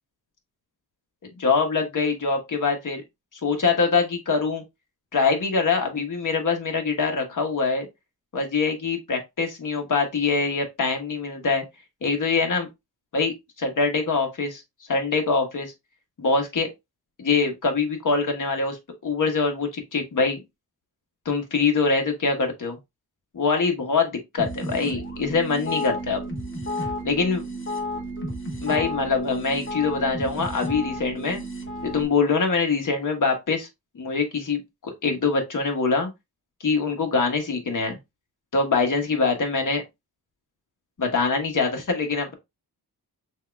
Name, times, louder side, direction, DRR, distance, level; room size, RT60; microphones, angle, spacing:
voice 1, 1.4-3.0 3.4-4.6 5.1-7.8 8.3-11.6 12.0-12.7 13.1-14.6 14.9-15.7 16.2-16.7 17.2-18.8 19.0-20.4 21.2-22.8 23.3-26.2 27.0-27.4 28.6-31.4 31.8-33.7 33.9-36.1 36.6-38.0 38.5-39.8 41.0-42.3, left 4 dB, 50° left, 1.4 m, -24 dB
sound 1, 24.4-32.1, equal, 30° left, 1.3 m, -32 dB
6.4 x 2.8 x 2.3 m
wide cardioid pair, 125°, 39 cm